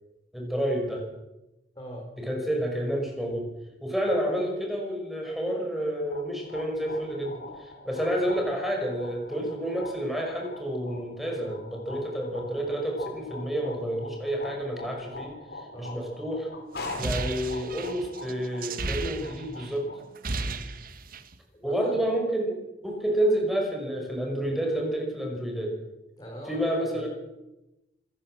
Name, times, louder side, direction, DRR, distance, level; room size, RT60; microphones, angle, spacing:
voice 1, 0.3-1.0 2.2-3.5 3.8-16.5 17.0-19.9 21.6-22.6 22.8-25.7 26.5-27.1, right 1 dB, ahead, 0 dB, 5.6 m, -29 dB
voice 2, 1.7-2.1 9.3-9.4 15.7-16.0 20.3-20.6 21.5-22.0 23.1-23.2 26.2-27.1, right 1 dB, 25° left, -2 dB, 5.0 m, -42 dB
sound 1, 5.9-20.0, left 3 dB, 65° left, 4.2 m, -43 dB
sound 2, 16.8-19.7 20.0-21.4, right 3 dB, 55° right, 1.4 m, -34 dB
26.5 x 15.0 x 7.5 m, 0.97 s
head